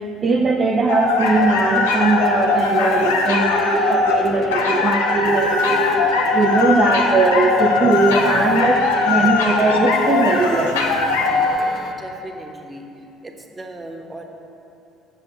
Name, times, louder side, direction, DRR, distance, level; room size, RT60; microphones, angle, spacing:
voice 1, 0.2-6.0 6.3-10.8, right 3 dB, 35° right, 0 dB, 0.7 m, -19 dB
sound 1, 0.9-11.6, left 4 dB, 75° left, 0.8 m, -19 dB
sound 2, 1.3-11.9, left 3 dB, 50° left, 1.0 m, -35 dB
voice 2, 12.0-12.9 13.2-14.2, right 1 dB, 20° right, 3 dB, 1.3 m, -37 dB
7.8 x 7.2 x 7.6 m, 2.8 s
figure-of-eight pair, 50°, 0 cm